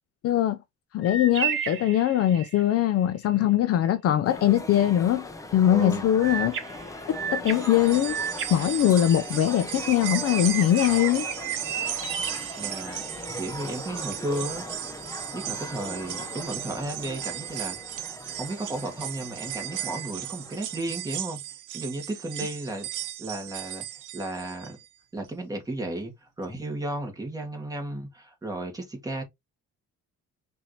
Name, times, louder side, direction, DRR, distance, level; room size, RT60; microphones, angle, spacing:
voice 1, 0.2-0.6 0.9-5.3 5.5-6.6 7.1-8.2 8.5-11.3, left 11 dB, 55° left, 0.5 m, -22 dB
sound 1, 1.0-2.7 6.2-9.4 9.8-13.2, right 8 dB, 45° right, 1.3 m, -34 dB
sound 2, 4.2-21.1, left 2 dB, 10° left, 0.6 m, -40 dB
voice 2, 5.7-6.1 12.6-13.0 13.4-14.6 15.3-17.8 18.4-21.4 21.7-23.8 24.1-24.8 25.1-29.2, right 1 dB, 10° right, 1.6 m, -34 dB
sound 3, 7.5-24.8 25.2-25.3 26.4-26.5, right 12 dB, 85° right, 0.8 m, -36 dB
5.7 x 2.7 x 3.1 m
cardioid pair, 145°, 30 cm